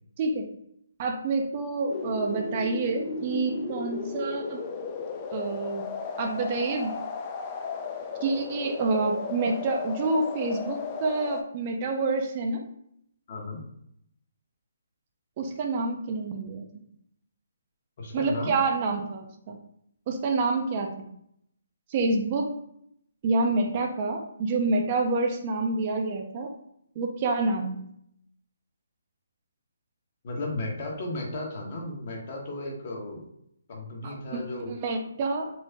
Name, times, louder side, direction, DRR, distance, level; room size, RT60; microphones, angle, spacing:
voice 1, 0.2-0.5 1.0-4.6 5.3-5.9 6.2-7.0 8.2-12.6 15.4-16.6 18.1-19.6 20.1-20.9 21.9-22.5 23.2-26.5 27.0-27.8 34.0-35.5, right 3 dB, 35° right, 3 dB, 0.5 m, -28 dB
sound 1, 1.9-11.4, left 5 dB, 25° left, 0.4 m, -35 dB
voice 2, 13.3-13.6 18.0-18.5 30.2-33.2 33.7-34.7, left 2 dB, 45° left, -1 dB, 1.0 m, -34 dB
4.5 x 2.1 x 2.8 m, 0.72 s
figure-of-eight pair, 145°, 0 cm